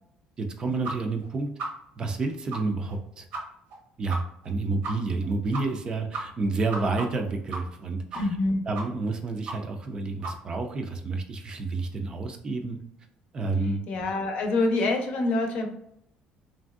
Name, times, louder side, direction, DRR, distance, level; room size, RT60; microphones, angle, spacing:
voice 1, 0.4-1.5 2.0-3.3 4.0-8.3 8.7-12.8 13.3-13.8, right 3 dB, 35° right, 4 dB, 0.4 m, -29 dB
sound 1, 0.8-0.9 1.2-1.3 1.6-1.7 2.1-2.2 2.5-2.6 2.9-3.0 3.3-3.4 3.7-3.8 4.1-4.2 4.4-4.5 4.8-4.9 5.2-5.3 5.5-5.9 6.1-7.8 8.1-8.5 8.7-9.1 9.4-9.6 9.8-9.9 10.2-10.3, right 3 dB, 80° right, 0.9 m, -34 dB
voice 2, 8.1-8.6 13.9-15.7, left 2 dB, 60° left, 4 dB, 0.6 m, -26 dB
3.2 x 2.6 x 2.3 m, 0.74 s
cardioid pair, 120°, 3 cm